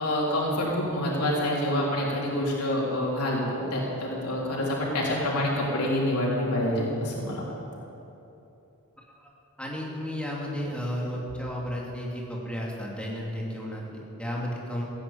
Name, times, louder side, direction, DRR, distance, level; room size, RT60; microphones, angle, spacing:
voice 1, 0.0-7.5, left 1 dB, 90° left, -4 dB, 3.7 m, -27 dB
voice 2, 9.6-14.8, equal, 5° left, -3 dB, 2.7 m, -33 dB
16.5 x 9.9 x 8.7 m, 2.9 s
head